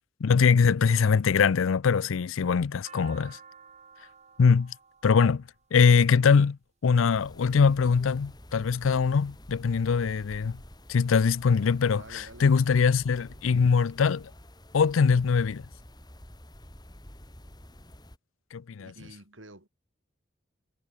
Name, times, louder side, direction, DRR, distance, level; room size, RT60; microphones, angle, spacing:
voice 1, 0.2-3.4 4.4-4.7 5.0-5.4 5.7-10.6 10.9-14.3 14.7-15.7 18.5-18.9, left 5 dB, 80° left, 0.5 m, -22 dB
sound 1, 2.4-6.6 7.5-7.9 8.5-9.2 9.5-9.6 9.8-10.6, right 6 dB, 35° right, 1.5 m, -53 dB
sound 2, 7.1-18.2, left 1 dB, 20° left, 3.6 m, -49 dB
voice 2, 11.9-12.5 12.8-12.9 18.8-19.7, right 2 dB, 70° right, 4.7 m, -49 dB
head